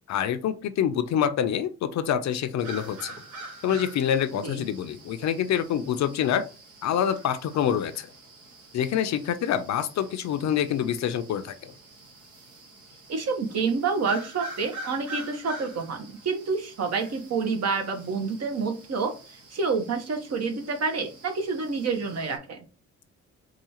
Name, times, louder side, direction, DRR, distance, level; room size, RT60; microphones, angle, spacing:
voice 1, 0.1-3.1 3.6-6.5 6.8-8.1 8.7-11.7, left 9 dB, 65° left, 10 dB, 0.6 m, -26 dB
sound 1, 2.6-22.4, right 1 dB, 80° right, 1.3 m, -45 dB
voice 2, 13.1-19.1 19.5-22.6, right 4 dB, 55° right, 5 dB, 1.0 m, -28 dB
4.8 x 2.4 x 2.9 m, 0.33 s
cardioid pair, 90°, 30 cm